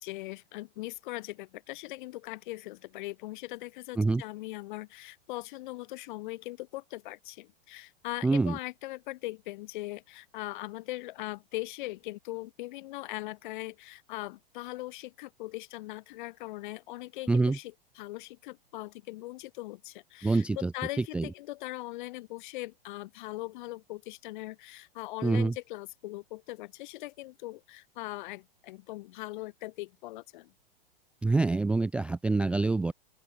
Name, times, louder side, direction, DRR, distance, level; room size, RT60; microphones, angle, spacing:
voice 1, 0.0-30.5, left 19 dB, 55° left, 2.1 m, -40 dB
voice 2, 8.2-8.6 17.3-17.6 20.2-20.7 21.0-21.3 25.2-25.5 31.2-32.9, right 3 dB, 5° right, 0.3 m, -26 dB
open air
hypercardioid pair, 105°, 29 cm